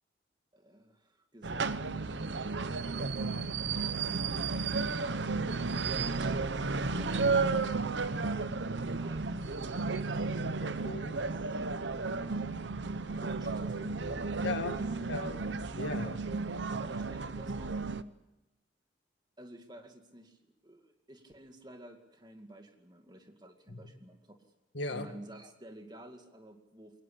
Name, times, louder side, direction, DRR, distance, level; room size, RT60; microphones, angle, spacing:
voice 1, 0.5-2.4 2.6-3.3 3.6-4.1 4.5-5.9 6.9-10.2 11.2-11.3 13.1-15.4 16.8-17.8 19.4-24.4 24.9-27.0, right 1 dB, 25° right, 5 dB, 2.3 m, -52 dB
sound 1, 1.4-18.0, right 4 dB, 85° right, 0.9 m, -33 dB
voice 2, 10.6-11.2 14.4-14.8 15.1-15.4 15.8-16.2 23.7-23.8 24.7-25.1, left 2 dB, 85° left, 7 dB, 2.0 m, -37 dB
23.0 x 19.0 x 8.3 m, 0.96 s
head